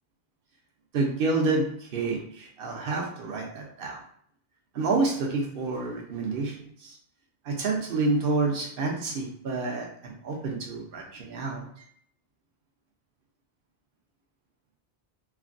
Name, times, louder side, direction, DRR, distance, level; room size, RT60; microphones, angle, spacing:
voice 1, 0.9-4.0 4.7-6.5 6.8-6.9 7.4-11.7, right 3 dB, 60° right, -1 dB, 0.9 m, -28 dB
3.3 x 2.2 x 2.5 m, 0.63 s
omnidirectional pair, 1.1 m